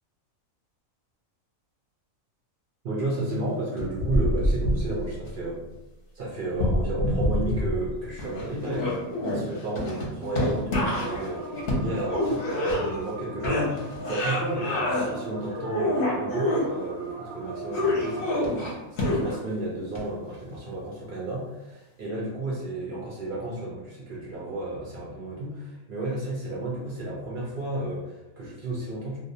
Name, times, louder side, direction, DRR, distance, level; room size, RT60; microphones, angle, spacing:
voice 1, 2.8-5.7 6.1-29.2, right 2 dB, 60° right, -5 dB, 0.5 m, -32 dB
sound 1, 3.8-5.3 6.5-7.9 8.2-13.1 13.4-15.1 15.5-16.7 17.7-19.5 20.0-20.1, left 1 dB, 55° left, 0.7 m, -26 dB
sound 2, 10.8-18.2, right 2 dB, 90° right, 1.0 m, -39 dB
2.5 x 2.0 x 2.6 m, 1.0 s
omnidirectional pair, 1.4 m